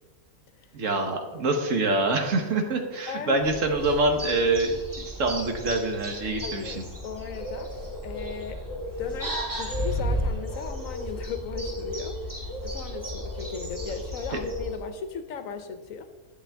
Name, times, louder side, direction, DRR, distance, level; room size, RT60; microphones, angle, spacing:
voice 1, 0.7-6.8, right 2 dB, 60° right, 4 dB, 1.4 m, -25 dB
voice 2, 3.1-3.4 6.4-7.7 8.0-8.6 9.0-16.1, left 6 dB, 70° left, 9 dB, 1.0 m, -37 dB
sound 1, 3.4-14.8, equal, 15° right, 1.2 m, -33 dB
11.5 x 7.2 x 3.4 m, 1.3 s
omnidirectional pair, 1.6 m